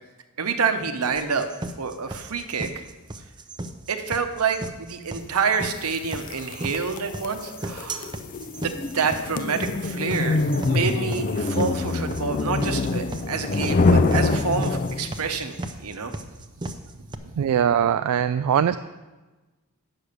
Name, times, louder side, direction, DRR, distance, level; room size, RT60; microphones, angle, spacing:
voice 1, 0.4-1.5 1.8-2.8 3.9-8.1 8.6-16.1, right 5 dB, 70° right, 7 dB, 0.9 m, -27 dB
sound 1, 1.2-17.2, right 2 dB, 20° right, 0.6 m, -35 dB
sound 2, 5.9-15.3, left 3 dB, 40° left, 0.4 m, -25 dB
voice 2, 17.4-18.8, right 8 dB, 90° right, 11 dB, 0.3 m, -21 dB
8.5 x 6.1 x 6.5 m, 1.2 s
head